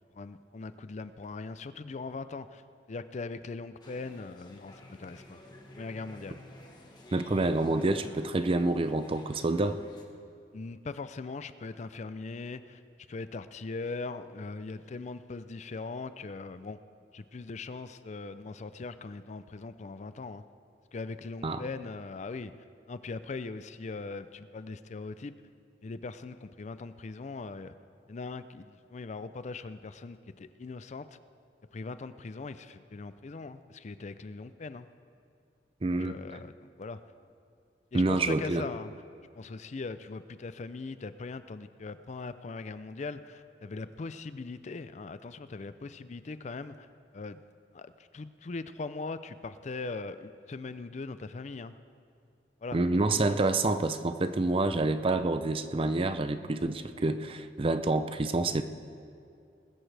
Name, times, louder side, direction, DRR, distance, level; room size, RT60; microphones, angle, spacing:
voice 1, 0.0-2.6 2.9-5.4 5.8-6.4 10.5-12.8 13.1-16.8 17.1-20.4 20.9-22.5 22.9-25.4 25.8-27.7 28.1-31.2 31.7-34.9 36.0-37.0 37.9-38.9 39.3-46.9 47.1-47.4 47.7-51.7 52.6-52.8, left 3 dB, 40° left, 13 dB, 0.4 m, -40 dB
sound 1, 3.8-10.0, left 1 dB, 25° left, 1.4 m, -52 dB
voice 2, 7.1-9.8 21.4-21.6 35.8-36.2 37.9-38.7 52.7-58.6, right 2 dB, 30° right, 10 dB, 0.5 m, -28 dB
20.0 x 13.5 x 3.4 m, 2.4 s
head